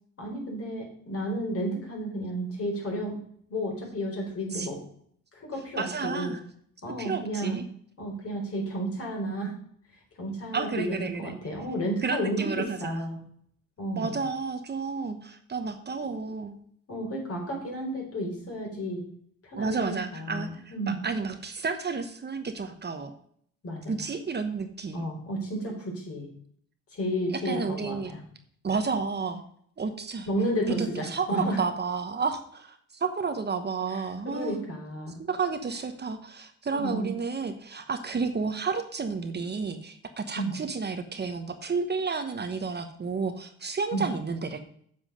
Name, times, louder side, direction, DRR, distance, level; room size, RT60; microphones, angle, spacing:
voice 1, 0.2-3.2 3.5-4.8 5.3-6.3 6.8-7.6 8.0-9.5 10.2-13.2 13.8-14.2 16.9-19.0 19.4-21.0 23.6-24.0 24.9-26.3 26.9-28.2 30.3-31.6 33.9-35.1 36.7-37.1 40.3-40.5 43.9-44.1, right 1 dB, 50° left, 0 dB, 4.3 m, -32 dB
voice 2, 5.8-6.4 7.0-7.6 10.5-11.4 12.0-13.0 14.0-16.5 19.6-20.5 20.9-23.1 23.9-25.1 27.3-28.1 28.6-29.4 29.8-30.3 30.7-32.7 33.0-34.6 35.3-44.6, right 4 dB, 35° right, 7 dB, 1.0 m, -31 dB
7.5 x 7.4 x 5.1 m, 0.63 s
cardioid pair, 90°, 30 cm